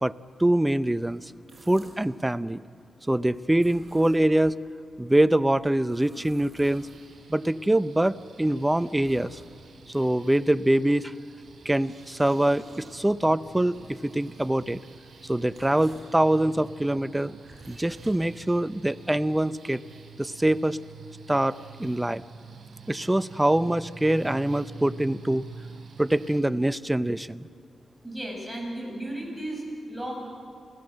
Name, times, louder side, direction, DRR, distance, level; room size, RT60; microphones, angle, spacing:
voice 1, 0.0-1.3 1.7-2.6 3.1-4.6 5.0-6.9 7.3-9.4 9.9-11.1 11.6-14.8 15.2-17.4 17.7-19.8 20.2-20.8 21.3-22.2 22.9-25.5 26.0-27.5, right 1 dB, 10° right, 15 dB, 0.6 m, -24 dB
sound 1, 1.3-2.2 3.5-4.5 5.5-7.3 8.0-9.9 11.3-16.2 17.1-18.8, right 2 dB, 40° right, 7.1 m, -53 dB
sound 2, 6.6-26.4, right 4 dB, 70° right, 4.0 m, -48 dB
voice 2, 28.0-30.2, right 1 dB, 5° left, 0 dB, 7.8 m, -34 dB
28.5 x 16.0 x 7.7 m, 2.4 s
cardioid pair, 70°, 0 cm